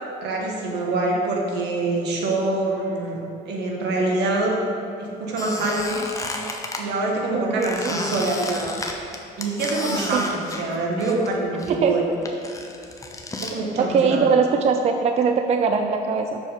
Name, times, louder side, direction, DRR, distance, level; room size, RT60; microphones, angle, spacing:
voice 1, 0.2-3.2 3.4-4.6 5.0-6.0 6.8-8.8 9.4-12.1 13.4-14.2, right 2 dB, 70° right, -1 dB, 1.5 m, -25 dB
Squeak, 5.3-6.8 7.6-11.3 11.6-13.5, left 2 dB, 20° left, 0.8 m, -32 dB
voice 2, 7.3-7.9 10.1-10.2 11.8-12.0 13.8-16.4, right 5 dB, 35° right, 5 dB, 0.4 m, -21 dB
6.2 x 5.2 x 5.1 m, 2.8 s
supercardioid pair, 90°, 18 cm